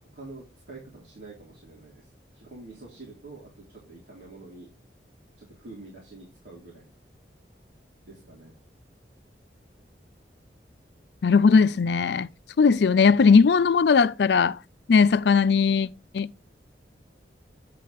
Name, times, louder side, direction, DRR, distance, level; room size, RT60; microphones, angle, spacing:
voice 1, 0.0-2.1 2.3-4.7 5.4-6.9 8.1-8.5, right 2 dB, 80° right, 3.4 m, -46 dB
voice 2, 11.2-12.3 12.6-14.6 14.9-15.9 16.1-16.3, left 5 dB, 75° left, 0.4 m, -18 dB
8.5 x 8.3 x 3.1 m
head